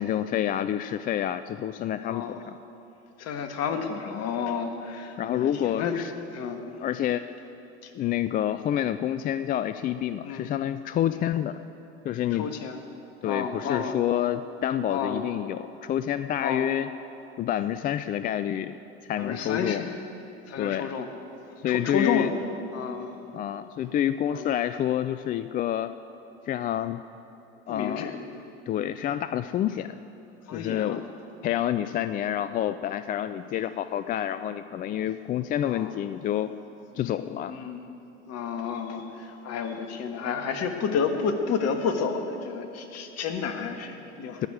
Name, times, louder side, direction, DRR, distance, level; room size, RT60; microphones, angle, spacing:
voice 1, 0.0-2.5 5.2-6.1 6.8-7.3 7.9-11.6 12.0-12.5 13.2-16.9 17.4-18.8 19.1-19.8 20.6-20.9 21.6-22.3 23.3-25.9 26.5-27.0 27.7-28.1 28.7-29.9 30.5-31.0 31.4-36.5 37.0-37.5 44.4-44.5, left 11 dB, 25° left, 12 dB, 0.3 m, -28 dB
voice 2, 2.1-2.4 3.2-6.0 6.3-6.7 7.8-7.9 10.2-10.5 11.1-11.2 12.3-12.8 13.2-14.0 14.9-15.3 16.4-16.7 19.2-19.9 20.5-21.1 21.7-22.3 22.7-23.1 24.3-24.5 27.7-28.4 30.5-31.1 35.6-36.0 36.9-37.8 38.3-44.5, left 6 dB, 45° left, 6 dB, 1.7 m, -31 dB
19.5 x 6.5 x 9.6 m, 2.9 s
hypercardioid pair, 80°, 35 cm